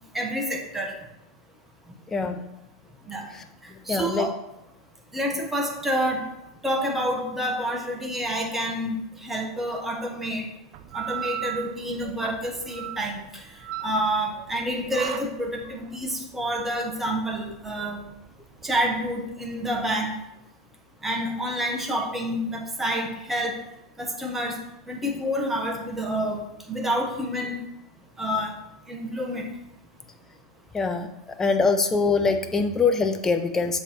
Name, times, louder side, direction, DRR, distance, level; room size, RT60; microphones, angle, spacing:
voice 1, 0.1-0.9 3.1-3.2 3.9-4.3 5.1-6.3 6.6-10.5 10.9-13.5 13.8-18.0 18.6-20.2 21.0-23.6 24.0-24.6 24.9-26.4 26.7-27.6 28.2-28.5 28.9-29.5, equal, 10° right, 1 dB, 1.1 m, -28 dB
voice 2, 2.1-2.4 3.3-3.4 3.7-4.3 30.7-31.1 31.4-33.8, left 4 dB, 15° left, 8 dB, 0.4 m, -23 dB
sound 1, 10.7-19.9, right 12 dB, 50° right, 0.4 m, -38 dB
7.2 x 3.4 x 4.2 m, 0.84 s
hypercardioid pair, 100°, 3 cm